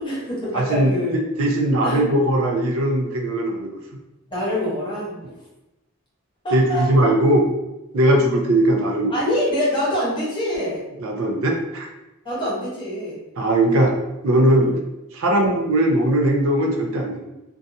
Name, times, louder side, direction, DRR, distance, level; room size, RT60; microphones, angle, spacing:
voice 1, 0.0-1.2 1.8-2.0 4.3-5.3 6.4-7.1 9.1-10.8 12.2-13.2 14.5-14.7 15.3-15.6, equal, 20° left, -8 dB, 1.0 m, -25 dB
voice 2, 0.5-3.8 6.5-7.5 7.9-9.2 11.0-11.9 13.4-13.9 14.2-14.7 15.2-17.3, right 1 dB, 70° right, 1 dB, 0.4 m, -19 dB
2.6 x 2.2 x 2.6 m, 0.97 s
head